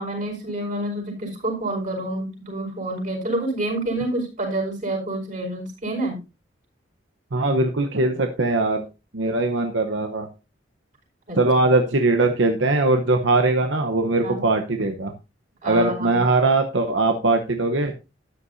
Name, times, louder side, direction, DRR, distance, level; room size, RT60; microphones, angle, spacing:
voice 1, 0.0-6.2 11.3-11.4 14.2-14.4 15.6-16.2, right 1 dB, 45° right, 0 dB, 4.9 m, -28 dB
voice 2, 7.3-8.8 9.1-10.3 11.4-15.1 15.6-17.9, right 2 dB, 80° right, 5 dB, 1.0 m, -21 dB
13.0 x 9.9 x 2.7 m, 0.27 s
head